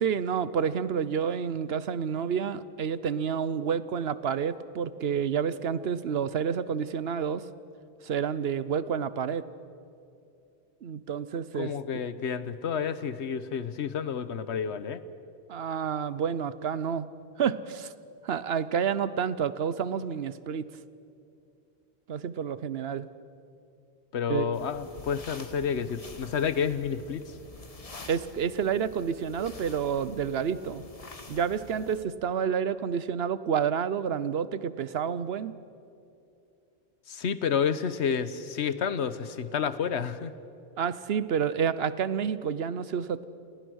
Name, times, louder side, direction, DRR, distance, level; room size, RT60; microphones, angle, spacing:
voice 1, 0.0-7.4 8.0-9.5 10.8-11.7 15.5-17.1 17.4-17.9 18.2-20.7 22.1-23.1 24.3-24.5 28.1-30.8 31.3-35.5 40.8-43.2, right 7 dB, 70° right, 15 dB, 1.0 m, -29 dB
voice 2, 11.5-15.0 24.1-27.4 37.1-40.3, left 7 dB, 85° left, 13 dB, 1.2 m, -30 dB
sound 1, 24.5-32.0, left 3 dB, 35° left, 1.3 m, -47 dB
29.5 x 19.0 x 6.3 m, 2.6 s
omnidirectional pair, 1.1 m